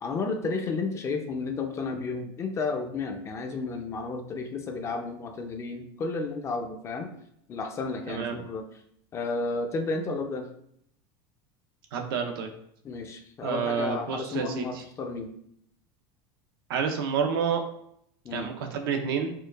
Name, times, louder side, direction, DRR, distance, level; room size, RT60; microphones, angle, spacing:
voice 1, 0.0-7.1 7.5-8.6 9.1-10.5 12.8-15.3 18.2-18.5, left 3 dB, 25° left, 5 dB, 0.4 m, -32 dB
voice 2, 8.1-8.4 11.9-12.5 13.4-14.6 16.7-17.6 18.3-19.3, right 6 dB, 90° right, 4 dB, 0.6 m, -29 dB
4.5 x 2.3 x 2.2 m, 0.71 s
supercardioid pair, 140°, 12 cm